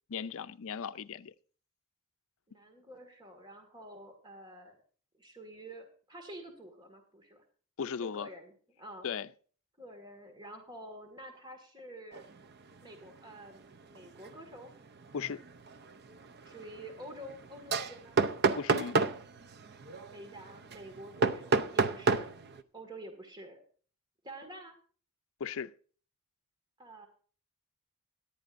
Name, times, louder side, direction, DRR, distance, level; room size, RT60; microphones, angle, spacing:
voice 1, 0.1-1.3 7.8-8.3 9.0-9.3 15.1-15.4 18.6-19.0 25.4-25.7, left 6 dB, 65° left, 0.5 m, -37 dB
voice 2, 2.5-4.8 5.2-7.4 7.9-9.1 9.8-12.3 12.8-14.7 16.4-18.2 20.1-22.3 22.7-23.6 24.2-24.8 26.8-27.1, right 1 dB, 20° right, 1.8 m, -48 dB
sound 1, 12.1-12.4 12.8-13.1 13.5-22.6, right 4 dB, 50° right, 0.6 m, -32 dB
17.5 x 11.0 x 2.5 m
head